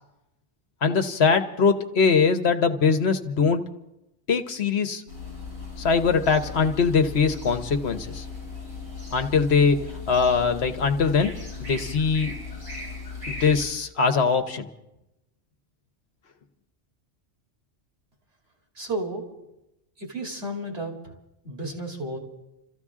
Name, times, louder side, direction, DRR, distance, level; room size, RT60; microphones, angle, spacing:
voice 1, 0.8-3.6 4.3-5.0 5.8-8.2 9.1-9.8 10.1-11.3 11.6-12.3 13.3-14.7, left 5 dB, 65° left, 7 dB, 1.2 m, -22 dB
sound 1, 5.1-13.6, left 4 dB, 80° right, 8.1 m, -37 dB
voice 2, 18.7-19.3 20.0-21.0 21.4-22.2, right 1 dB, 60° right, 0 dB, 3.2 m, -32 dB
28.0 x 14.0 x 3.6 m, 0.92 s
omnidirectional pair, 1.2 m